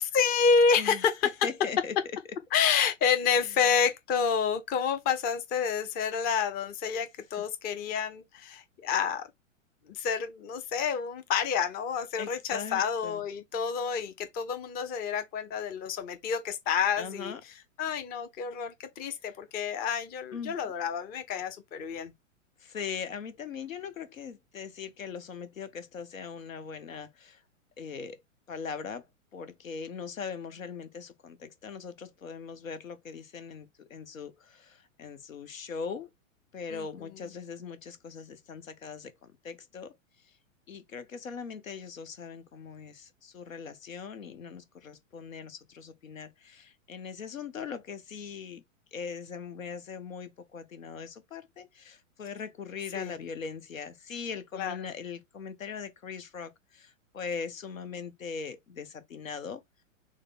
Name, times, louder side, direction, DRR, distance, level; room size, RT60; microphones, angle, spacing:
voice 1, 0.0-1.5 2.5-9.3 9.9-22.1 36.7-37.3 52.9-53.1 54.5-54.9, left 6 dB, 25° left, 0.7 m, -29 dB
voice 2, 1.4-2.0 3.4-3.5 12.2-13.2 17.0-17.4 20.3-20.5 22.6-27.4 27.8-28.2 28.5-29.1 29.3-36.1 36.5-39.9 40.7-48.6 48.9-59.6, left 6 dB, 75° left, 1.0 m, -40 dB
6.5 x 2.2 x 3.5 m
hypercardioid pair, 110°, 40 cm